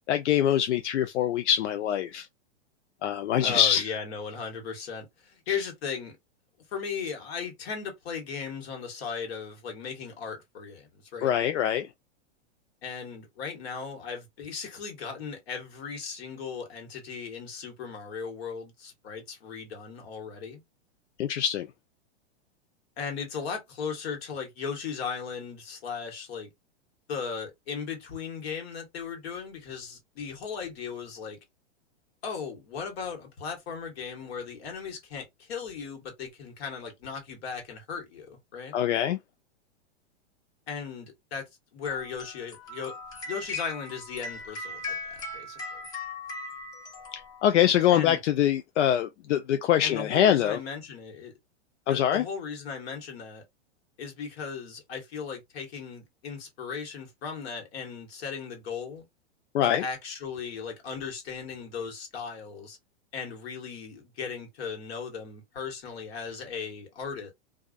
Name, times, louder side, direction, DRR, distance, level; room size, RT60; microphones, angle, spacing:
voice 1, 0.1-2.3 3.0-3.9 5.5-5.6 11.2-11.9 21.2-21.7 38.7-39.2 47.1-50.6 51.9-52.2 59.5-59.8, left 10 dB, 90° left, 0.5 m, -24 dB
voice 2, 3.4-6.1 6.7-11.3 12.8-20.6 23.0-26.5 27.1-31.4 32.2-38.7 40.7-42.9 43.2-45.8 47.9-48.2 49.8-51.3 51.9-53.4 54.0-59.1 59.6-62.8 63.1-67.3, left 6 dB, 65° left, 1.5 m, -37 dB
sound 1, 41.8-47.7, left 3 dB, 10° left, 0.3 m, -39 dB
2.4 x 2.3 x 2.4 m
hypercardioid pair, 140°, 34 cm